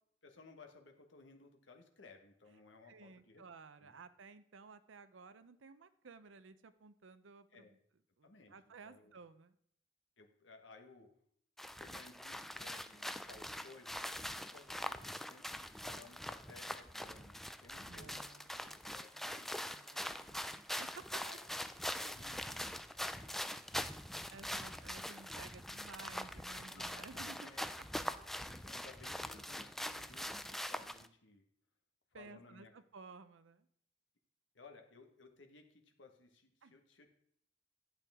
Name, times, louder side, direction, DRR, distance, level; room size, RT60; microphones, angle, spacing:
voice 1, 0.2-3.4 3.8-3.9 7.5-7.7 8.2-8.5 8.8-9.1 10.2-11.1 11.7-18.2 18.9-19.5 21.2-21.4 21.9-22.8 23.2-23.9 26.7-26.9 27.4-27.6 28.2-31.4 32.1-32.7 34.5-37.1, left 3 dB, 70° left, 4 dB, 1.4 m, -59 dB
voice 2, 2.8-7.8 8.2-9.5 17.7-19.3 19.5-21.2 24.3-27.5 28.0-28.1 32.1-33.7 36.6-36.8, right 4 dB, 85° right, 12 dB, 0.6 m, -56 dB
sound 1, 11.6-31.1, left 1 dB, ahead, 0.3 m, -43 dB
11.5 x 8.5 x 3.6 m, 0.68 s
head